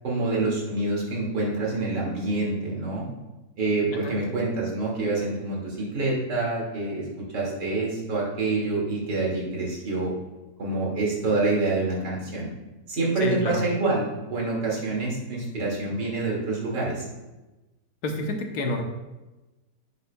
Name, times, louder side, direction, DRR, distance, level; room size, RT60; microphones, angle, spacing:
voice 1, 0.0-3.0 3.6-7.0 7.3-10.1 10.6-12.5 12.9-14.0 14.3-17.1, right 2 dB, 85° right, -4 dB, 2.9 m, -26 dB
voice 2, 13.2-13.6 18.0-18.8, left 2 dB, 70° left, 3 dB, 1.5 m, -28 dB
10.5 x 8.0 x 2.3 m, 1.1 s
omnidirectional pair, 1.8 m